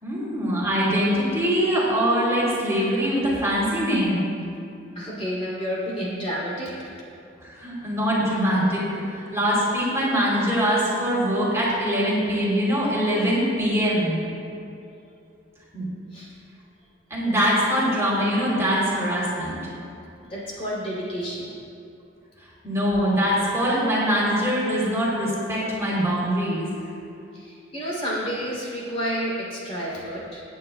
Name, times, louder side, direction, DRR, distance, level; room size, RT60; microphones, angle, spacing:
voice 1, 0.0-4.2 7.4-8.9 9.1-14.2 15.7-15.9 17.1-19.6 22.6-26.7, equal, 15° right, -6 dB, 3.0 m, -23 dB
voice 2, 4.9-6.9 16.1-16.3 20.2-21.5 27.3-30.4, equal, 30° left, -6 dB, 2.8 m, -30 dB
23.5 x 9.5 x 2.2 m, 2.6 s
head